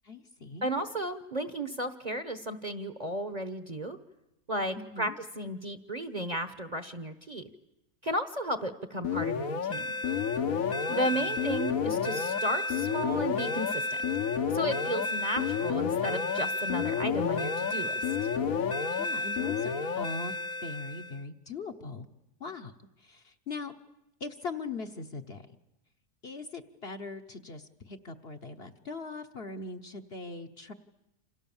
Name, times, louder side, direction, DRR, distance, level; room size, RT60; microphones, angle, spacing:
voice 1, 0.0-0.7 4.7-5.2 10.9-11.3 19.0-20.3 20.6-22.1 22.4-22.7 23.0-23.8 24.2-25.5 26.2-30.7, left 3 dB, 45° left, 6 dB, 1.2 m, -40 dB
voice 2, 0.6-4.0 4.5-5.1 5.4-7.5 8.0-9.9 10.9-14.0 14.5-18.0, right 1 dB, 30° right, 10 dB, 1.1 m, -34 dB
sound 1, 9.0-21.2, left 5 dB, 65° left, 1.5 m, -30 dB
28.5 x 27.0 x 7.2 m, 0.93 s
omnidirectional pair, 1.6 m